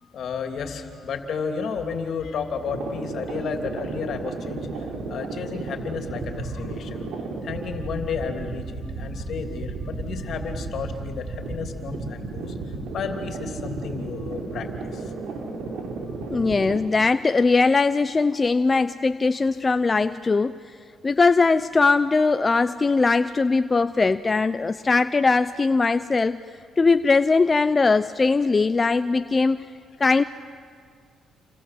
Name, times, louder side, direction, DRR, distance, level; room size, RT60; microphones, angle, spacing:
voice 1, 0.0-7.1 7.4-12.5 12.9-15.1, left 5 dB, 65° left, 5 dB, 3.1 m, -32 dB
sound 1, 2.6-16.8, right 3 dB, 80° right, 4.4 m, -33 dB
voice 2, 16.3-20.7 21.0-26.4 26.8-29.7 30.0-30.2, left 4 dB, 30° left, 11 dB, 0.6 m, -20 dB
28.0 x 27.0 x 7.7 m, 2.2 s
cardioid pair, 90°, 0 cm